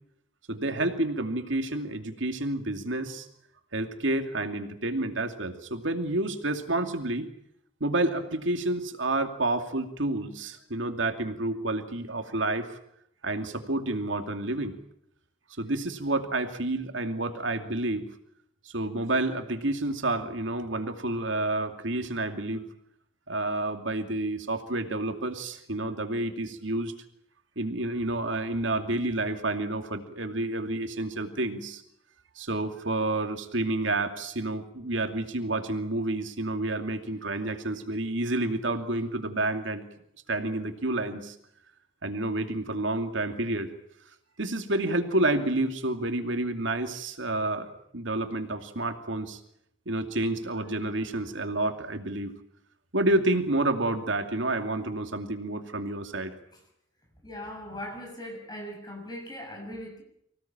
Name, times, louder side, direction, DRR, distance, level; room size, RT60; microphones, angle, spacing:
voice 1, 0.5-3.3 3.7-7.3 7.8-12.8 13.2-14.8 15.6-18.0 18.7-22.6 23.3-26.9 27.6-31.8 32.4-39.8 40.3-41.3 42.0-43.7 44.4-49.4 49.9-52.3 52.9-56.3, right 2 dB, 80° right, 6 dB, 2.5 m, -29 dB
voice 2, 57.2-60.0, equal, 20° left, 3 dB, 6.5 m, -39 dB
25.5 x 17.5 x 8.9 m, 0.74 s
head